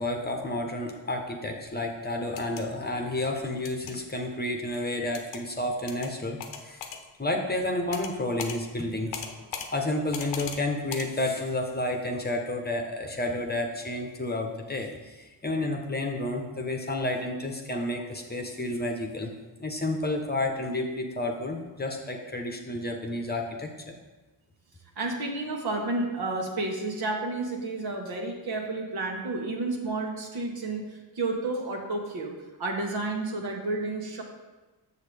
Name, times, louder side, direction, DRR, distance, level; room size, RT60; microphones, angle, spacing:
voice 1, 0.0-6.8 7.2-19.3 19.6-23.9, left 1 dB, 20° left, 2 dB, 1.0 m, -31 dB
sound 1, 2.2-2.6 3.7-3.9 5.1-5.4 5.9-6.1 6.4-7.0 7.9-8.1 8.4-8.6 9.1-9.7 10.1-10.6 10.9-11.1, left 7 dB, 75° left, 0.9 m, -37 dB
voice 2, 24.9-30.8 31.1-32.3 32.6-34.2, right 2 dB, 55° right, 1 dB, 1.6 m, -31 dB
6.9 x 6.5 x 3.5 m, 1.2 s
supercardioid pair, 60°, 45 cm